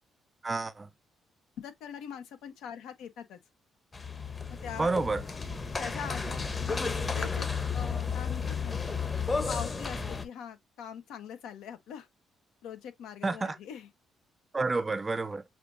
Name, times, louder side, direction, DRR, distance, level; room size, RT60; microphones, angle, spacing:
voice 1, 0.4-0.9 4.8-5.2 13.2-13.6 14.5-15.4, right 3 dB, 25° right, 0.5 m, -29 dB
voice 2, 1.6-3.4 4.6-4.9 5.8-6.8 7.1-8.8 9.5-12.1 12.6-13.9, left 8 dB, 85° left, 1.1 m, -42 dB
sound 1, 3.9-10.2, left 5 dB, 30° left, 0.9 m, -33 dB
6.7 x 2.7 x 2.6 m
cardioid pair, 90°, 0 cm